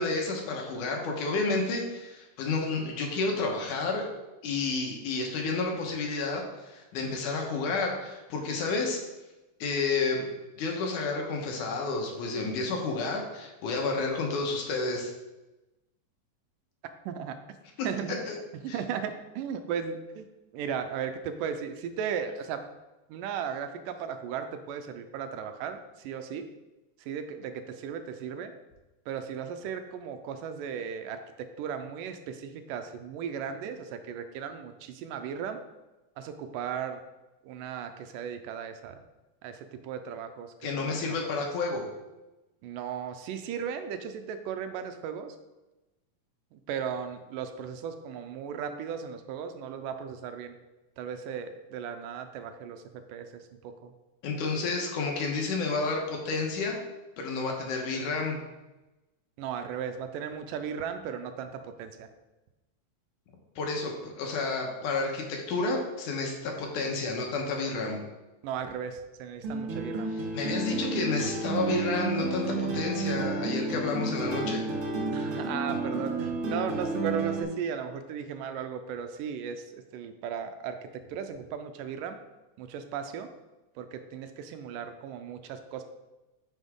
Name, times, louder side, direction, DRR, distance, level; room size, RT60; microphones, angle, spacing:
voice 1, 0.0-4.1 4.4-9.0 9.6-10.3 10.6-15.1 17.8-17.9 18.3-18.4 18.7-18.8 40.6-41.8 54.2-56.8 57.2-58.4 63.6-68.0 70.3-74.6, left 3 dB, 75° left, 1 dB, 2.6 m, -30 dB
voice 2, 17.1-17.4 17.8-18.2 18.6-20.3 20.5-22.6 23.1-26.5 27.0-28.5 29.1-35.6 36.2-37.0 37.4-39.0 39.4-41.0 42.6-45.4 46.5-50.6 51.0-53.9 59.4-62.1 68.4-70.1 75.1-80.8 81.1-82.2 82.6-83.3 83.8-85.8, right 7 dB, 85° right, 8 dB, 2.2 m, -36 dB
sound 1, 69.4-77.4, right 3 dB, 50° right, 2.2 m, -31 dB
9.3 x 6.0 x 3.6 m, 1.0 s
omnidirectional pair, 3.8 m